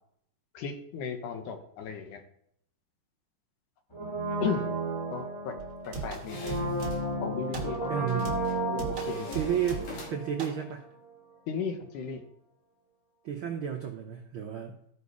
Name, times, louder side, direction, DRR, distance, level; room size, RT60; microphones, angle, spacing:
voice 1, 0.5-2.2 4.4-4.7 5.1-5.6 5.9-6.8 7.2-8.3 8.7-9.4 11.5-12.3, left 6 dB, 80° left, 5 dB, 2.6 m, -35 dB
Brass instrument, 3.9-10.8 11.0-11.1, right 2 dB, 25° left, 0.6 m, -33 dB
sound 1, 5.6-7.2 7.5-7.9 8.2-10.1 10.4-10.6, right 4 dB, 40° right, 1.2 m, -39 dB
sound 2, 5.8-7.0 8.1-8.6 8.9-10.4, left 3 dB, 65° left, 3.6 m, -45 dB
voice 2, 7.9-8.3 9.3-10.8 13.2-14.7, right 9 dB, 90° right, 2 dB, 1.1 m, -32 dB
14.0 x 5.5 x 4.8 m, 0.70 s
omnidirectional pair, 3.6 m